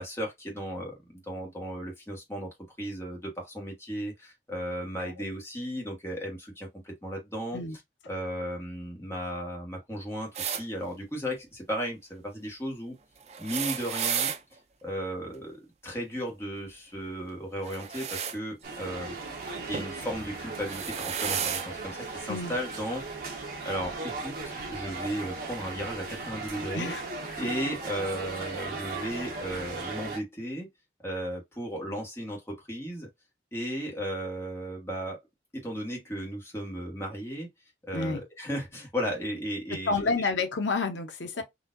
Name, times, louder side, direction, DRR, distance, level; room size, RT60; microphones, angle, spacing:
voice 1, 0.0-7.6 8.1-13.0 13.4-14.3 14.8-19.1 19.7-23.0 23.6-24.3 24.7-26.9 27.4-30.7 31.0-33.1 33.5-35.2 35.5-37.5 37.8-40.3 41.4-41.5, equal, 15° left, 1.3 m, -35 dB
sound 1, 10.3-10.6 13.3-14.4 17.6-18.4 19.7-19.9 20.5-21.7 22.7-22.8 24.0-24.1, right 8 dB, 35° right, 0.4 m, -32 dB
sound 2, 18.6-30.2, right 3 dB, 55° right, 1.3 m, -37 dB
voice 2, 26.7-27.4 37.9-38.2 39.7-41.4, left 3 dB, 90° left, 0.8 m, -30 dB
4.1 x 2.6 x 2.5 m
head